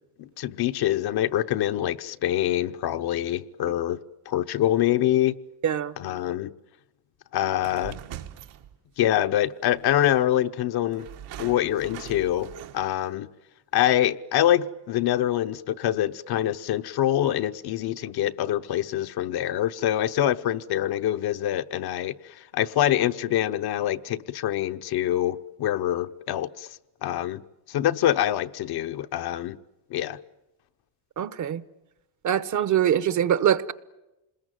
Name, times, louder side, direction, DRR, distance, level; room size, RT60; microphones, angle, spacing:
voice 1, 0.2-4.0 4.3-5.4 6.0-6.5 7.3-8.0 9.0-11.1 11.4-12.5 12.7-13.3 13.7-22.1 22.5-26.7 27.0-27.4 27.7-29.6 29.9-30.2, left 12 dB, 65° left, 0.9 m, -25 dB
voice 2, 5.6-5.9 31.2-31.6 32.2-33.7, right 10 dB, 45° right, 0.9 m, -23 dB
sound 1, 7.6-9.1 10.0-10.1 10.9-13.1, right 11 dB, 80° right, 1.6 m, -42 dB
27.0 x 21.0 x 9.1 m
cardioid pair, 130°, 41 cm